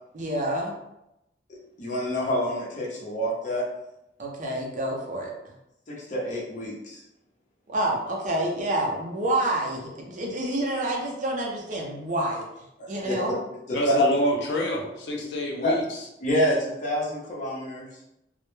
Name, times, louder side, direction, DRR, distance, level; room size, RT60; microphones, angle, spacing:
voice 1, 0.1-0.7 4.2-5.3 7.7-12.4 12.9-13.4, right 1 dB, 45° right, -1 dB, 0.5 m, -28 dB
voice 2, 1.5-3.7 5.9-7.0 12.8-13.2 13.7-14.1 15.6-15.7 16.2-17.9, equal, 45° left, -4 dB, 0.7 m, -27 dB
voice 3, 13.7-16.1, equal, 80° left, 0 dB, 0.5 m, -27 dB
2.1 x 2.0 x 3.0 m, 0.88 s
head